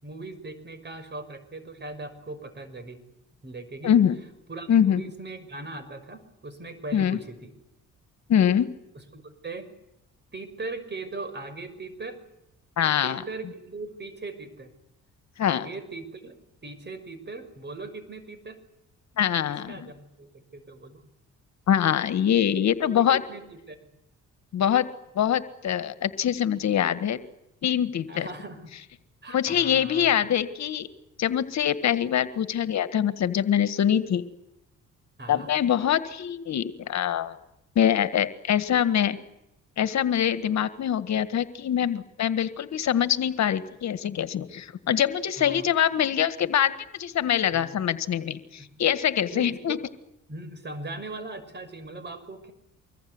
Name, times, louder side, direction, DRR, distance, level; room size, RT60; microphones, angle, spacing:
voice 1, 0.0-3.0 3.4-3.9 4.5-7.5 9.1-9.7 10.3-12.2 13.0-14.7 15.4-16.4 16.6-18.6 19.3-21.0 22.3-23.8 28.1-28.7 29.2-30.1 35.2-35.5 45.4-45.6 47.5-47.8 49.3-49.8 50.3-52.5, right 3 dB, 35° right, 11 dB, 6.1 m, -39 dB
voice 2, 3.8-4.2 4.7-5.0 6.9-7.2 8.3-8.7 12.8-13.2 15.4-15.7 19.2-19.7 21.7-23.2 24.5-24.9 25.2-27.2 27.6-28.3 29.3-30.9 31.2-34.2 35.3-37.4 37.8-39.2 39.8-49.8, left 9 dB, 65° left, 12 dB, 1.7 m, -24 dB
25.5 x 22.0 x 9.6 m, 0.85 s
cardioid pair, 90°, 30 cm